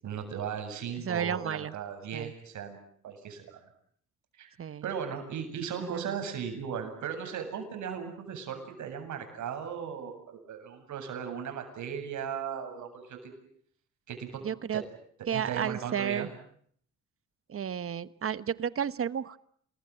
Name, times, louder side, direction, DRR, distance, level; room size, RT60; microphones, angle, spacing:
voice 1, 0.0-2.8 3.0-3.6 4.4-4.5 4.8-13.3 14.1-14.4 14.7-14.8 15.3-16.3, right 7 dB, 70° right, 6 dB, 7.8 m, -37 dB
voice 2, 1.0-1.7 2.1-2.3 4.6-4.8 5.8-6.1 14.4-14.8 15.3-16.3 17.5-19.4, right 8 dB, 45° right, 16 dB, 1.1 m, -32 dB
28.0 x 21.5 x 9.0 m, 0.64 s
cardioid pair, 90°, 30 cm